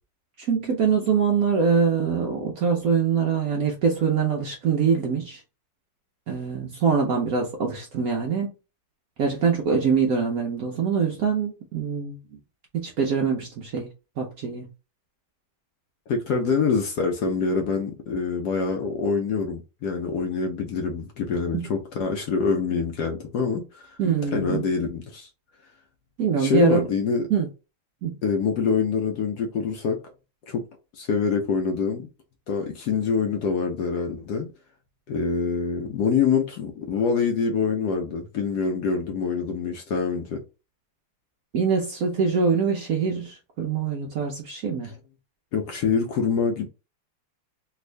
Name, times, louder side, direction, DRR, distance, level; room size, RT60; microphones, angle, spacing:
voice 1, 0.4-5.4 6.3-8.5 9.2-12.2 12.7-13.9 14.2-14.7 21.5-21.7 24.0-24.6 26.2-26.8 27.3-27.5 28.0-28.2 41.5-44.9, right 6 dB, 85° right, 0.7 m, -24 dB
voice 2, 16.1-23.9 24.3-25.3 26.4-27.3 28.2-30.0 30.5-30.6 30.9-32.1 32.5-34.5 35.1-40.4 45.5-46.6, left 5 dB, 70° left, 1.0 m, -25 dB
3.5 x 2.4 x 3.2 m
omnidirectional pair, 2.3 m